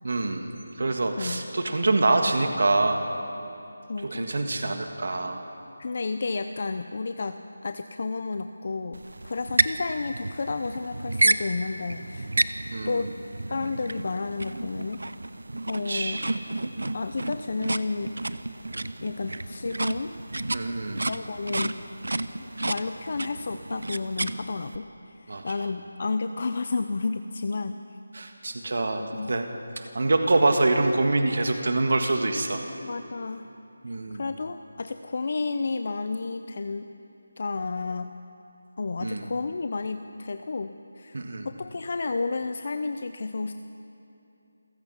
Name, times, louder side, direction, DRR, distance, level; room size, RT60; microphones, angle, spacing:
voice 1, 0.0-3.0 4.0-5.4 12.7-13.0 15.8-16.3 20.5-21.0 25.3-25.4 28.1-29.5 29.7-32.6 33.8-34.2 39.0-39.3 41.1-41.5, right 2 dB, 60° right, 5 dB, 1.7 m, -25 dB
voice 2, 3.9-4.3 5.8-7.4 7.6-12.3 12.8-13.1 13.5-15.0 15.7-16.2 16.9-18.1 19.0-20.2 21.1-21.8 22.4-27.8 29.0-29.3 32.8-33.5 34.1-36.9 37.4-38.1 38.8-41.2 41.4-43.5, left 3 dB, 45° left, 9 dB, 0.6 m, -31 dB
sound 1, 8.9-24.8, right 2 dB, 85° right, 0.9 m, -31 dB
28.0 x 16.0 x 5.7 m, 2.8 s
figure-of-eight pair, 175°, 0 cm